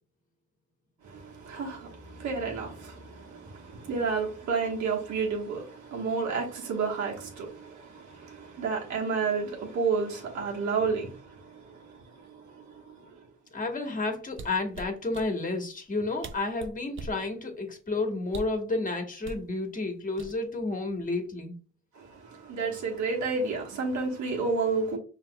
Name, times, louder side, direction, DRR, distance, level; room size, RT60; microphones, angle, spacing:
voice 1, 1.0-13.2 21.9-25.0, right 4 dB, 65° right, 1.5 m, -31 dB
voice 2, 13.5-21.5, left 2 dB, 25° left, 1.2 m, -31 dB
sound 1, 14.3-15.3 16.0-16.1 16.2-17.2 18.3-18.6 19.2-19.5 20.2-20.6 21.0-21.3, right 3 dB, 40° right, 0.5 m, -41 dB
5.8 x 3.1 x 2.3 m
cardioid pair, 90°, 30 cm